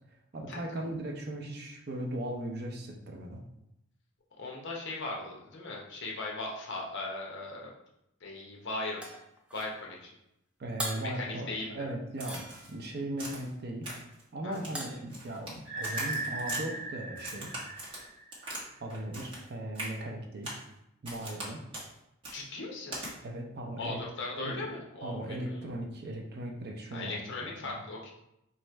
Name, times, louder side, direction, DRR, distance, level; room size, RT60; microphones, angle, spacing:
voice 1, 0.3-3.4 10.6-12.4 12.7-13.9 14.3-17.5 18.8-20.5 21.0-21.6 23.2-24.0 24.4-24.7 25.0-27.8, right 1 dB, 50° right, 1 dB, 0.6 m, -38 dB
voice 2, 4.4-7.7 8.2-9.0 9.5-10.1 10.9-11.7 14.4-14.6 22.3-23.0 23.8-25.7 26.9-28.1, left 2 dB, 55° left, -2 dB, 0.8 m, -38 dB
sound 1, 9.0-9.8 10.8-11.2 12.2-12.9 14.7-15.1, equal, 5° right, 0.4 m, -40 dB
Crack, 12.2-12.7 13.2-13.5 13.8-14.2 14.5-15.5 15.8-16.6 17.2-18.6 18.9-19.5 19.7-19.9 20.4-20.6 21.0-21.5 21.7-21.9 22.2-22.4 22.9-23.1, right 1 dB, 25° right, 1.1 m, -41 dB
sound 2, 15.6-18.5, right 2 dB, 75° right, 1.3 m, -37 dB
3.1 x 2.4 x 4.4 m, 0.83 s
head